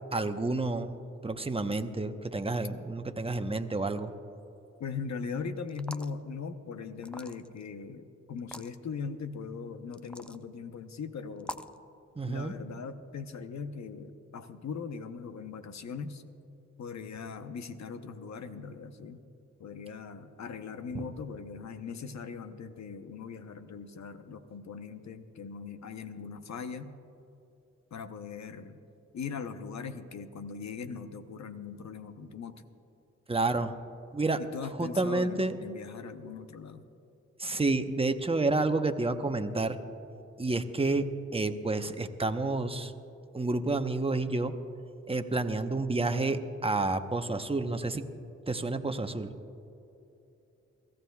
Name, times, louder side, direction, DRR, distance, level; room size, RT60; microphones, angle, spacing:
voice 1, 0.1-1.0 1.2-4.1 12.2-12.5 20.9-21.0 33.3-33.7 34.1-34.4 34.8-35.5 37.4-39.8 40.4-42.9 43.3-44.6 45.1-48.1 48.5-49.4, right 3 dB, 20° right, 7 dB, 1.0 m, -30 dB
voice 2, 4.8-11.7 12.2-16.2 16.8-19.2 19.6-26.9 27.9-28.8 29.1-32.6 34.4-36.9, left 5 dB, 70° left, 9 dB, 0.9 m, -40 dB
sound 1, 5.7-6.2 7.0-7.6 8.4-8.7 9.9-10.4 11.4-11.8, left 1 dB, 5° left, 0.6 m, -43 dB
22.5 x 14.5 x 2.4 m, 2.8 s
supercardioid pair, 45°, 29 cm